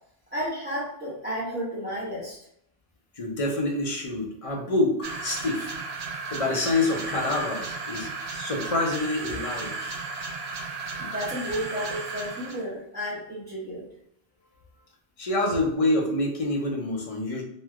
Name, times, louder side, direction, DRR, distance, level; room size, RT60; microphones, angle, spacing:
voice 1, 0.3-2.4 11.0-13.9, equal, 10° right, -9 dB, 0.7 m, -32 dB
voice 2, 3.2-5.7 6.3-10.0 15.2-17.4, left 2 dB, 40° left, -1 dB, 0.6 m, -27 dB
sound 1, 5.0-12.6, right 4 dB, 55° right, 0.4 m, -34 dB
3.1 x 2.6 x 2.3 m, 0.74 s
omnidirectional pair, 1.1 m